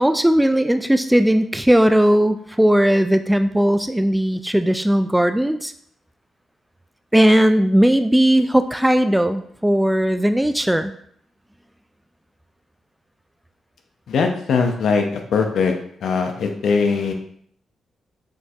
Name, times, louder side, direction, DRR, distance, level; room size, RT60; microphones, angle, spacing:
voice 1, 0.0-5.7 7.1-10.9, right 1 dB, 5° right, 9 dB, 0.3 m, -17 dB
voice 2, 14.1-15.7 16.0-17.1, left 5 dB, 70° left, 4 dB, 0.6 m, -20 dB
6.3 x 2.6 x 2.4 m, 0.65 s
supercardioid pair, 50°, 0 cm